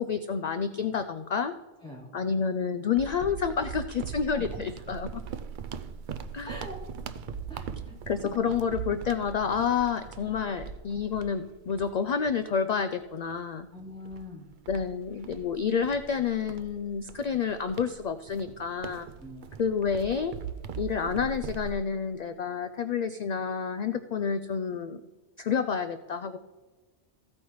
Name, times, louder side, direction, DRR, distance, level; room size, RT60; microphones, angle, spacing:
voice 1, 0.0-1.5 2.1-5.2 6.3-6.5 8.1-13.7 14.7-19.1 19.6-20.3 20.8-25.0 25.4-26.4, left 6 dB, 60° left, 10 dB, 0.4 m, -29 dB
sound 1, 3.0-12.8 13.3-13.5 14.1-21.7, right 7 dB, 55° right, 0.6 m, -41 dB
voice 2, 7.5-8.0 8.2-8.4 13.7-14.4 18.8-18.9 19.2-19.5, equal, 5° left, -8 dB, 3.6 m, -43 dB
15.5 x 8.6 x 3.1 m, 1.2 s
omnidirectional pair, 1.1 m